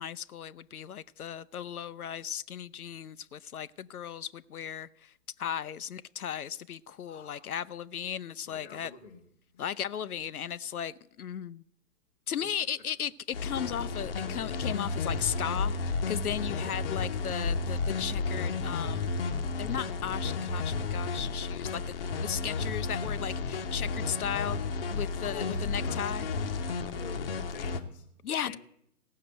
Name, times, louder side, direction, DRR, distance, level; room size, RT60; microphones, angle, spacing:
voice 1, 0.0-5.1 5.4-8.9 9.6-11.6 12.3-19.1 19.6-26.3 28.2-28.6, left 9 dB, 65° left, 0.5 m, -36 dB
voice 2, 7.1-7.5 8.5-9.3 9.5-9.6 12.4-12.5 16.6-16.8 25.2-26.3 26.9-28.1 28.4-28.6, left 4 dB, 10° left, 0.6 m, -46 dB
sound 1, 13.3-27.8, left 4 dB, 35° left, 0.9 m, -32 dB
16.0 x 6.5 x 7.8 m
figure-of-eight pair, 140°, 48 cm